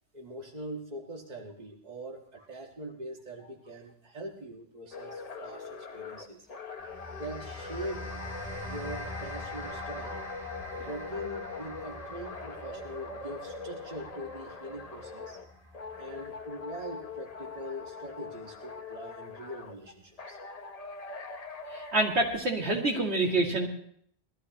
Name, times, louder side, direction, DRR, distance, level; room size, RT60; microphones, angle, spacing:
voice 1, 0.1-6.5 7.2-8.0 8.6-10.2 10.8-15.4 16.0-20.4, right 1 dB, 40° right, 0 dB, 1.8 m, -42 dB
sound 1, 4.9-15.5 15.7-19.8 20.2-22.4, left 4 dB, 40° left, 0.9 m, -42 dB
sound 2, 6.8-17.3, left 2 dB, 10° right, 4.8 m, -44 dB
voice 2, 21.7-23.7, right 2 dB, 80° right, -1 dB, 2.6 m, -27 dB
21.0 x 13.5 x 3.0 m, 0.64 s
omnidirectional pair, 1.1 m